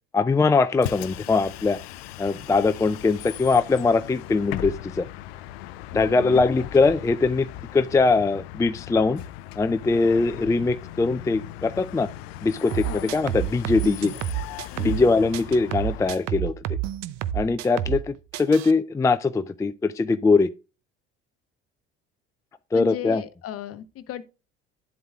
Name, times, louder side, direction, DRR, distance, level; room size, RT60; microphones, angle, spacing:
voice 1, 0.1-1.8 2.2-5.1 5.9-7.5 7.7-9.2 9.6-12.1 12.4-14.1 14.8-16.5 17.3-20.5 22.7-23.2, left 3 dB, 10° left, 0.4 m, -21 dB
Bus, 0.7-16.2, left 13 dB, 75° left, 0.5 m, -38 dB
voice 2, 5.9-6.4 12.8-13.1 14.7-15.1 22.7-24.2, left 10 dB, 50° left, 0.9 m, -35 dB
sound 1, 12.7-15.1 15.3-18.1 18.3-18.7, right 12 dB, 60° right, 0.7 m, -29 dB
10.5 x 7.8 x 2.4 m
hypercardioid pair, 60°, 31 cm